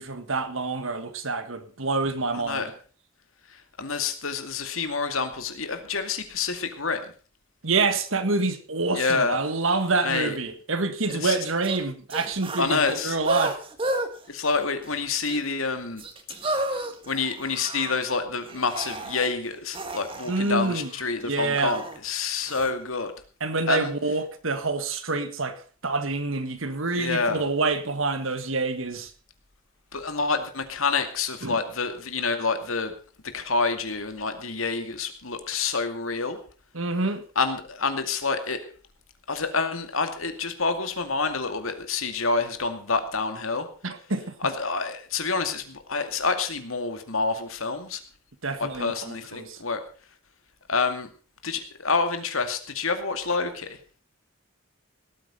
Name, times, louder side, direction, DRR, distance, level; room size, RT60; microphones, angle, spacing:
voice 1, 0.0-2.7 7.6-13.6 20.3-20.9 21.3-21.8 23.4-29.1 31.4-31.6 36.7-37.2 43.8-44.2 48.4-49.6, right 3 dB, 75° right, 1.7 m, -27 dB
voice 2, 2.3-2.7 3.5-7.1 8.9-9.4 10.0-10.4 11.1-11.4 12.6-13.2 14.3-16.0 16.5-23.1 23.7-23.9 27.0-27.5 29.9-32.9 33.3-36.4 37.4-38.6 39.3-43.7 44.4-48.0 48.7-49.8 50.7-51.1 51.4-53.8, left 4 dB, 85° left, 2.3 m, -28 dB
sound 1, 11.1-11.2 11.6-11.8 12.1-14.1 14.4-14.9 15.2-15.4 16.0-18.0 18.4-19.3 19.7-22.0 22.4-22.7, right 1 dB, 25° right, 1.5 m, -33 dB
18.0 x 8.8 x 5.6 m
head